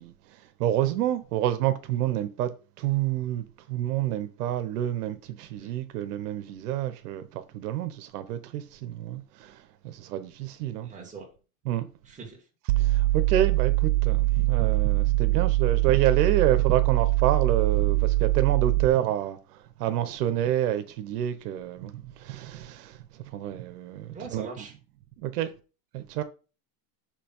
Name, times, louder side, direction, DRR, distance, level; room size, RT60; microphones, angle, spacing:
voice 1, 0.0-2.5 2.8-10.9 11.6-11.9 12.8-24.6 25.2-25.5 25.9-26.2, right 12 dB, 85° right, 1.1 m, -28 dB
voice 2, 10.8-11.3 12.1-12.4 24.1-24.7, right 4 dB, 15° right, 2.1 m, -41 dB
sound 1, 12.7-18.9, right 18 dB, 65° right, 0.5 m, -23 dB
6.7 x 2.9 x 5.5 m
supercardioid pair, 150°, 45 cm